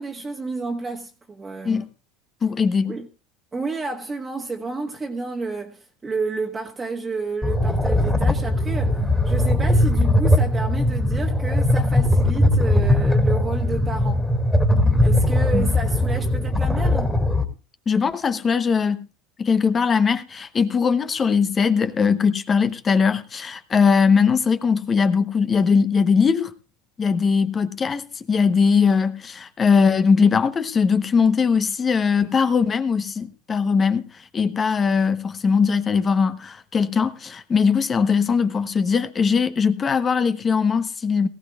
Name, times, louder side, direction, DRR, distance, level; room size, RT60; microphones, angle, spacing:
voice 1, 0.0-1.8 2.8-3.1 3.5-14.3 15.0-17.2, right 3 dB, 20° right, 1.5 m, -30 dB
voice 2, 2.4-2.9 15.5-15.7 17.9-19.1 19.4-26.5 27.0-41.3, left 5 dB, 25° left, 0.9 m, -20 dB
sound 1, 7.4-17.4, left 1 dB, 5° left, 2.3 m, -19 dB
19.0 x 15.5 x 2.4 m
supercardioid pair, 105°, 0 cm